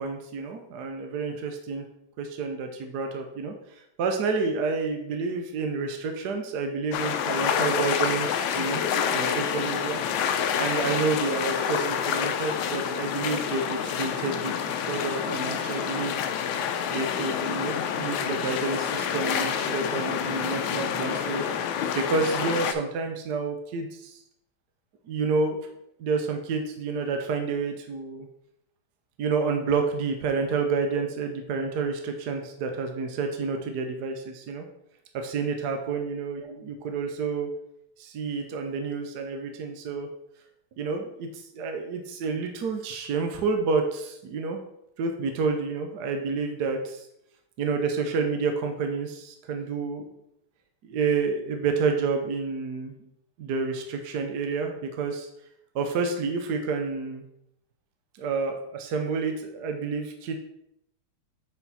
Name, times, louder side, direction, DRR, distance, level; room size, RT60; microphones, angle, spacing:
voice 1, 0.0-1.8 2.2-8.8 9.1-10.0 10.6-16.2 16.9-24.2 25.1-25.6 26.0-28.3 29.2-34.6 35.1-37.5 38.0-40.1 40.8-44.6 45.0-47.1 47.6-50.0 50.8-53.1 53.4-55.3 55.7-57.2 58.1-60.4, right 4 dB, 65° right, 4 dB, 1.1 m, -29 dB
sound 1, 6.9-22.7, left 8 dB, 75° left, 1.3 m, -28 dB
7.1 x 4.7 x 4.1 m, 0.79 s
omnidirectional pair, 2.3 m